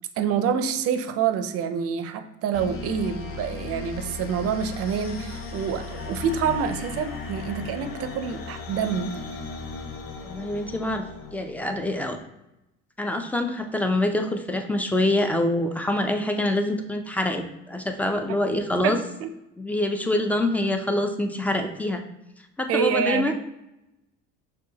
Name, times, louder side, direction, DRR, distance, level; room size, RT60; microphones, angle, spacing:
voice 1, 0.2-9.2 18.8-19.3 22.7-23.4, right 7 dB, 50° right, 8 dB, 0.5 m, -27 dB
sound 1, 2.5-12.0, left 4 dB, 50° left, 0.8 m, -36 dB
voice 2, 10.2-11.0 11.3-12.2 13.0-19.0 19.6-22.0 22.6-23.4, left 1 dB, 5° left, 5 dB, 0.4 m, -25 dB
6.1 x 2.3 x 2.8 m, 0.90 s
supercardioid pair, 90°, 30 cm